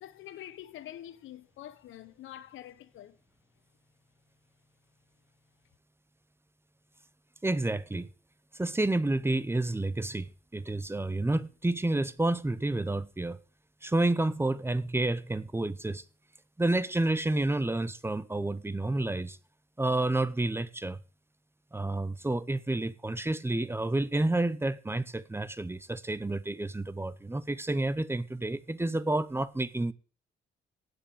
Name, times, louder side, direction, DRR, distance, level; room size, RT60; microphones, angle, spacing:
voice 1, 0.0-3.2, left 12 dB, 80° left, 1.0 m, -46 dB
voice 2, 7.4-8.1 8.5-13.4 13.8-16.0 16.6-19.4 19.8-21.0 21.7-29.9, right 2 dB, 10° right, 0.8 m, -30 dB
9.0 x 7.9 x 8.5 m
cardioid pair, 90°, 20 cm